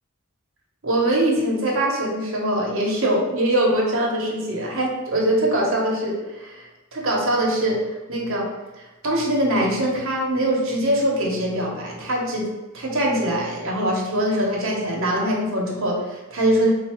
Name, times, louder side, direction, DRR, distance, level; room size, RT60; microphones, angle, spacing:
voice 1, 0.8-7.8 8.1-8.5 8.8-12.5 12.7-16.7, right 1 dB, 65° right, -2 dB, 1.1 m, -22 dB
3.6 x 2.7 x 4.4 m, 1.1 s
head